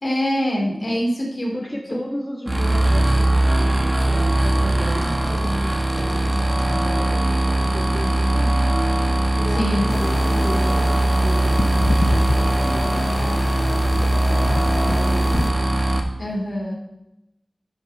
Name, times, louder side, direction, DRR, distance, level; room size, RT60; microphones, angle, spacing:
voice 1, 0.0-1.5 9.6-9.9 16.2-16.7, equal, 50° left, -1 dB, 2.7 m, -24 dB
voice 2, 1.5-8.8 9.4-15.7, equal, 5° left, -2 dB, 1.9 m, -34 dB
sound 1, 2.5-16.0, right 1 dB, 25° right, 1.5 m, -20 dB
sound 2, 3.5-9.9, right 1 dB, 70° right, 1.2 m, -41 dB
sound 3, 9.9-15.5, left 3 dB, 75° left, 0.6 m, -29 dB
12.0 x 5.2 x 5.5 m, 0.90 s
wide cardioid pair, 55°, 0 cm